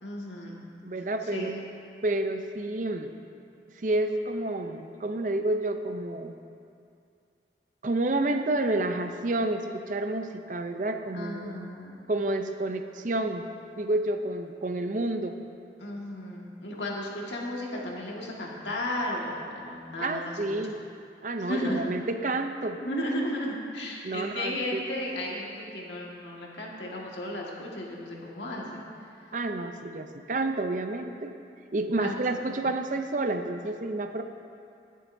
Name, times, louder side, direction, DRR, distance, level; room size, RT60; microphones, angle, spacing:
voice 1, 0.0-0.6 1.3-1.7 11.1-12.1 15.8-20.6 21.4-21.8 22.8-28.8 32.0-32.5, left 1 dB, 90° left, -3 dB, 1.8 m, -34 dB
voice 2, 0.8-1.5 2.0-3.1 3.8-6.4 7.8-11.7 12.1-13.5 13.8-15.4 20.0-20.8 21.2-22.8 24.0-24.8 29.3-31.3 31.7-34.2, right 2 dB, 45° right, 7 dB, 0.5 m, -29 dB
20.0 x 7.6 x 2.7 m, 2.4 s
head